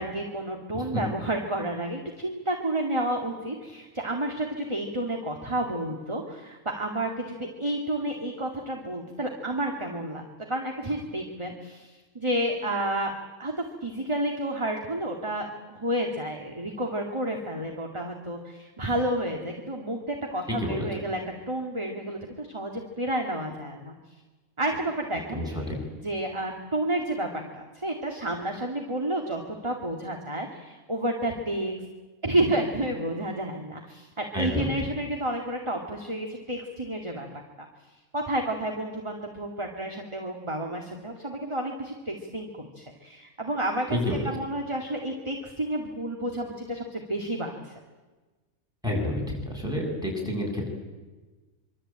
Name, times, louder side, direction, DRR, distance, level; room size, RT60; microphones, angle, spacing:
voice 1, 0.0-15.5 15.7-21.2 21.5-23.9 24.6-25.4 26.0-31.7 32.2-37.3 38.1-44.0 44.2-47.7, right 1 dB, 20° right, 2 dB, 2.4 m, -30 dB
voice 2, 20.5-21.0 25.3-25.8 34.3-34.9 43.9-44.2 48.8-50.7, left 1 dB, 5° right, 0 dB, 7.9 m, -29 dB
25.5 x 25.0 x 9.0 m, 1.2 s
omnidirectional pair, 1.5 m